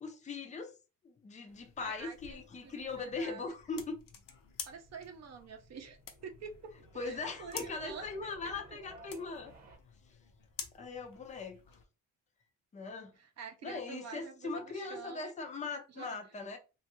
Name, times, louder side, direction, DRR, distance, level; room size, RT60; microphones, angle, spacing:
voice 1, 0.0-0.7 1.0-4.0 7.0-9.5 10.7-11.6 12.7-13.1 13.6-16.6, left 3 dB, 20° left, 0.4 m, -40 dB
sound 1, 1.5-11.8, left 7 dB, 70° left, 0.7 m, -51 dB
voice 2, 1.8-3.4 4.6-8.8 13.2-15.3 16.0-16.2, right 5 dB, 50° right, 0.6 m, -48 dB
sound 2, 4.7-9.8, right 2 dB, 25° right, 1.0 m, -57 dB
3.0 x 2.4 x 2.9 m
cardioid pair, 160°, 35 cm